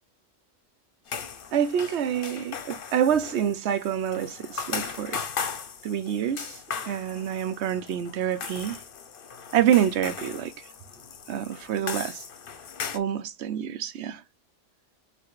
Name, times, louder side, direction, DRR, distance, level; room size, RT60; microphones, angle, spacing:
sound 1, 1.1-13.0, left 6 dB, 50° left, 0.8 m, -37 dB
voice 1, 1.5-5.2 5.8-8.8 9.5-10.6 11.3-12.2 12.9-14.2, right 9 dB, 65° right, 0.9 m, -27 dB
4.4 x 3.6 x 3.1 m
omnidirectional pair, 1.3 m